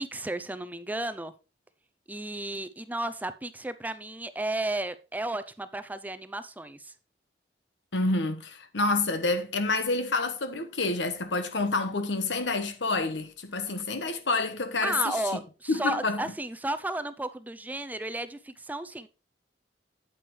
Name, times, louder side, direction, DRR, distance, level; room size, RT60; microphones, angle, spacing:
voice 1, 0.0-1.3 2.1-6.9 14.8-19.1, right 2 dB, 10° right, 0.5 m, -33 dB
voice 2, 7.9-15.2 15.7-16.2, left 3 dB, 80° left, 1.2 m, -28 dB
8.7 x 8.5 x 3.2 m
head